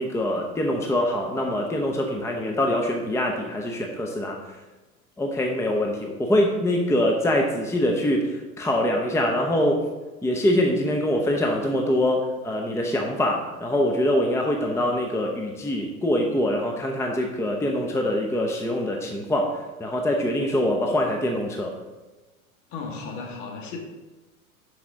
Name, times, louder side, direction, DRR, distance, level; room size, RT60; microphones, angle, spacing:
voice 1, 0.0-4.4 5.2-9.8 10.2-21.7, left 1 dB, 5° left, 1 dB, 0.8 m, -24 dB
voice 2, 22.7-23.8, left 4 dB, 50° left, 1 dB, 2.0 m, -35 dB
11.0 x 4.9 x 3.8 m, 1.2 s
hypercardioid pair, 90°, 44 cm